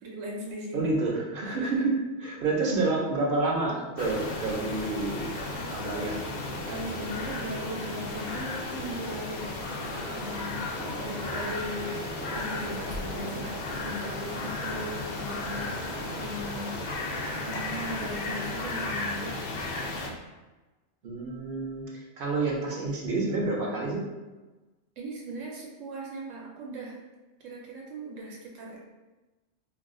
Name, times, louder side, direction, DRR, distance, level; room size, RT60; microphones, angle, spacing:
voice 1, 0.0-0.9 1.4-1.7 6.7-9.5 10.1-10.6 10.9-16.8 17.3-19.3 25.0-27.0 27.4-28.8, equal, 90° right, -2 dB, 1.0 m, -38 dB
voice 2, 0.7-5.3 5.7-6.3 10.8-11.2 21.0-24.0, right 3 dB, 55° right, -2 dB, 0.7 m, -29 dB
sound 1, 4.0-20.1, left 2 dB, 65° left, 0.4 m, -34 dB
2.4 x 2.3 x 3.6 m, 1.2 s
omnidirectional pair, 1.3 m